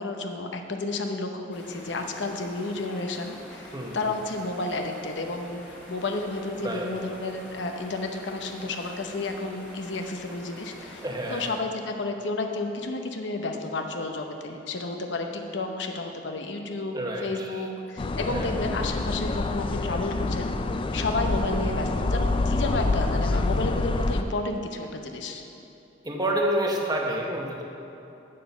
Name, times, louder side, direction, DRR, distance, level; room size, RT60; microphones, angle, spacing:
voice 1, 0.0-5.6 5.9-11.0 11.3-20.5 20.9-25.4, left 2 dB, 80° left, 4 dB, 0.8 m, -31 dB
sound 1, 1.5-11.5, left 1 dB, 5° left, 2.0 m, -46 dB
voice 2, 3.7-4.1 6.6-6.9 11.0-11.4 16.9-17.6 18.2-18.6 26.0-27.6, right 1 dB, 20° right, 0 dB, 0.9 m, -29 dB
sound 2, 18.0-24.2, left 2 dB, 30° left, 0.3 m, -27 dB
7.5 x 6.6 x 6.9 m, 2.8 s
head